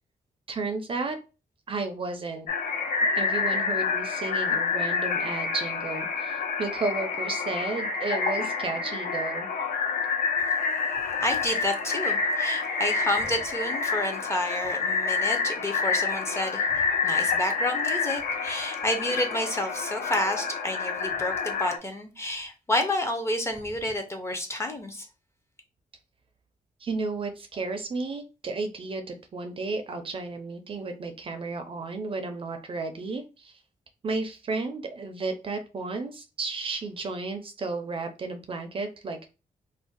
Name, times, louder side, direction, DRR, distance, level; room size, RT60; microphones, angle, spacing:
voice 1, 0.5-1.2 1.7-2.5 3.2-9.5 26.8-33.6 34.0-39.3, right 3 dB, 35° right, 0.4 m, -33 dB
sound 1, 2.5-21.8, left 4 dB, 75° left, 0.5 m, -28 dB
voice 2, 11.2-25.1, left 1 dB, 20° left, 0.5 m, -30 dB
2.5 x 2.0 x 3.8 m
wide cardioid pair, 155°, 15 cm